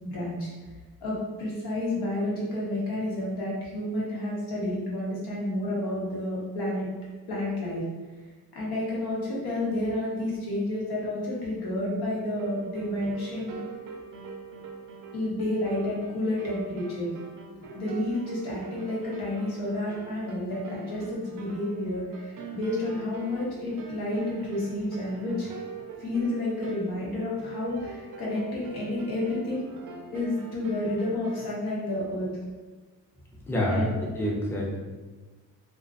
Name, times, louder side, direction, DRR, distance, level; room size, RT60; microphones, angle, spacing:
voice 1, 0.0-0.5 1.0-6.9 7.3-7.8 8.5-13.7 15.1-17.1 17.7-25.5 26.0-29.7 30.1-32.3 33.7-34.0, left 1 dB, 85° left, -5 dB, 1.0 m, -30 dB
sound 1, 12.3-31.5, right 4 dB, 60° right, 0.5 m, -43 dB
voice 2, 33.5-34.8, equal, 5° left, -4 dB, 0.5 m, -27 dB
2.5 x 2.2 x 2.4 m, 1.3 s
cardioid pair, 95°, 37 cm